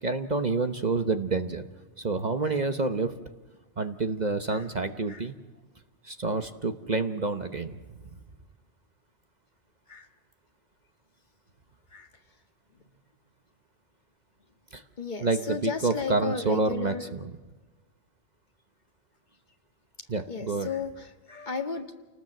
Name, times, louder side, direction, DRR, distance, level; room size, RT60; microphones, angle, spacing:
voice 1, 0.0-1.7 2.0-3.1 3.8-5.3 6.0-7.7 14.7-14.8 15.2-17.2 20.1-20.7, right 3 dB, 40° right, 9 dB, 1.1 m, -28 dB
voice 2, 15.0-17.0 20.3-21.9, left 5 dB, 40° left, 5 dB, 2.0 m, -34 dB
28.5 x 19.0 x 7.8 m, 1.2 s
omnidirectional pair, 1.2 m